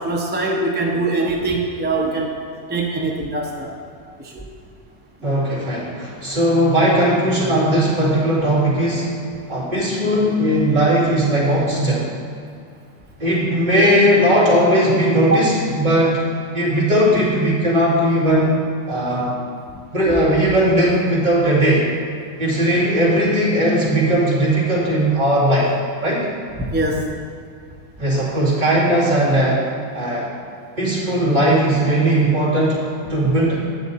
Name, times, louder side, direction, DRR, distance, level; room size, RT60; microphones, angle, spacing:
voice 1, 0.0-2.4 2.7-3.8 4.2-4.4 13.8-13.9 15.3-15.4 26.6-27.1, right 2 dB, 10° right, -1 dB, 0.5 m, -22 dB
voice 2, 5.2-9.1 9.5-12.0 13.2-16.2 16.5-18.6 18.9-19.4 19.9-21.8 22.4-25.7 26.0-26.3 28.0-29.6 29.9-30.3 30.8-33.6, right 1 dB, 40° right, -7 dB, 2.3 m, -18 dB
9.1 x 7.6 x 4.1 m, 2.4 s
omnidirectional pair, 1.3 m